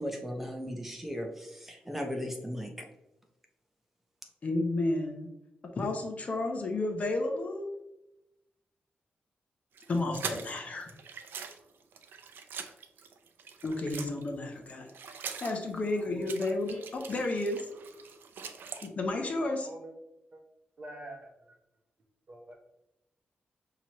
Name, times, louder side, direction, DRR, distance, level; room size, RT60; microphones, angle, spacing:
voice 1, 0.0-2.9, equal, 5° right, 1 dB, 0.7 m, -37 dB
voice 2, 4.4-5.3 5.8-7.7 9.9-10.9 13.6-17.7 18.8-19.7, left 2 dB, 40° left, 3 dB, 0.7 m, -32 dB
sound 1, 9.7-14.3 14.6-18.9, right 6 dB, 80° right, 0.5 m, -43 dB
voice 3, 16.0-16.3 18.4-18.5 19.6-19.9 20.3-20.4 20.8-21.6 22.3-22.6, right 1 dB, 40° right, 2 dB, 0.8 m, -46 dB
6.0 x 2.9 x 3.0 m, 0.90 s
wide cardioid pair, 150°, 3 cm